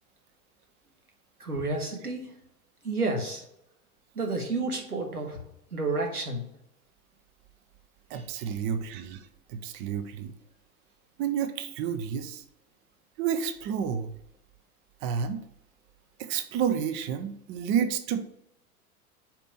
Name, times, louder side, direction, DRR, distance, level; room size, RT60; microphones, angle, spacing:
voice 1, 1.4-2.3 2.8-3.4 4.1-5.4 5.7-6.4 8.1-8.2, right 3 dB, 90° right, 2 dB, 1.6 m, -30 dB
voice 2, 8.1-10.3 11.2-12.4 13.2-14.1 15.0-15.4 16.2-18.2, right 8 dB, 25° right, 8 dB, 0.5 m, -30 dB
5.1 x 4.4 x 5.4 m, 0.76 s
figure-of-eight pair, 90°, 44 cm